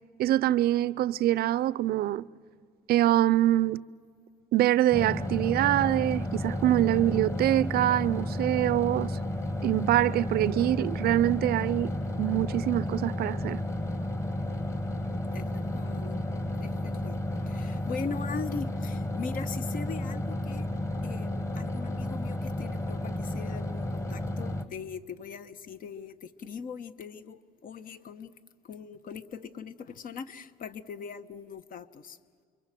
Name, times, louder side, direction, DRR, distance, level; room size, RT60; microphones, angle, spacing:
voice 1, 0.2-2.3 2.9-3.8 4.5-9.1 9.6-11.9 12.2-13.6, right 14 dB, 65° right, 0.6 m, -24 dB
sound 1, 4.9-24.6, left 1 dB, 15° left, 1.4 m, -32 dB
voice 2, 15.3-16.2 16.6-20.7 21.0-28.4 28.6-32.2, left 5 dB, 55° left, 1.1 m, -40 dB
28.5 x 23.0 x 7.6 m
cardioid pair, 110°, 17 cm